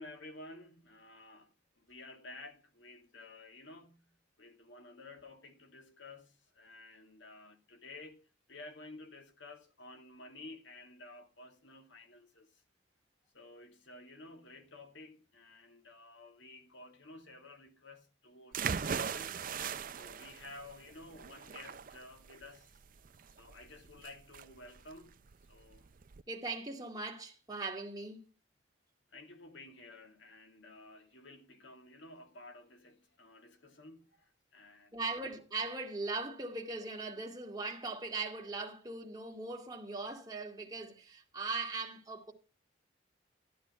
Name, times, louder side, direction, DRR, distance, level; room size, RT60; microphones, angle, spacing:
voice 1, 0.0-12.6 13.3-19.4 19.9-22.8 23.4-25.9 29.1-35.2, left 2 dB, 65° left, 2.4 m, -53 dB
sound 1, 18.5-26.2, right 6 dB, 45° right, 0.5 m, -40 dB
voice 2, 26.3-28.3 34.9-42.3, right 3 dB, 20° right, 2.3 m, -39 dB
13.0 x 10.5 x 4.4 m
head